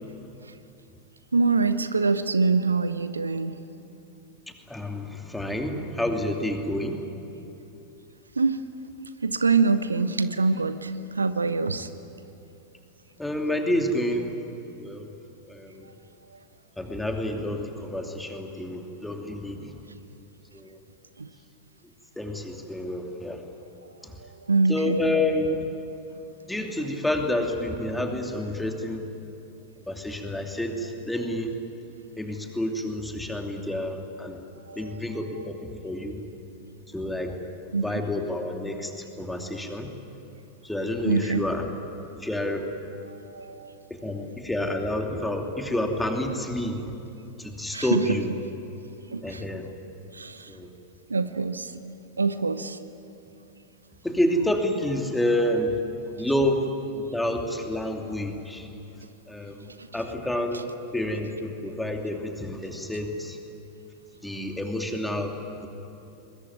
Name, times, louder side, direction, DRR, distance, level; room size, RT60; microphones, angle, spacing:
voice 1, 1.3-3.5 8.4-8.6 9.2-11.9 21.2-21.3 24.5-25.0 34.7-34.9 37.7-37.8 41.0-41.5 43.1-43.7 47.7-48.0 49.1-49.4 50.1-50.5 51.1-51.7 52.2-52.8, right 4 dB, 75° right, 13 dB, 0.8 m, -24 dB
voice 2, 4.7-7.1 13.2-14.3 14.8-15.1 15.5-15.9 16.8-19.8 20.5-20.8 22.2-23.5 24.0-24.2 24.7-25.7 26.5-29.0 29.9-31.5 32.2-34.4 34.7-36.3 36.9-37.3 37.8-39.9 40.6-41.7 42.2-42.7 44.0-46.9 47.4-48.3 49.2-49.7 50.5-50.7 54.0-55.8 56.2-56.6 56.9-58.7 59.3-60.6 60.9-63.4 64.2-65.7, left 1 dB, 5° left, 3 dB, 2.7 m, -29 dB
22.0 x 21.5 x 9.9 m, 2.9 s
figure-of-eight pair, 90°, 0 cm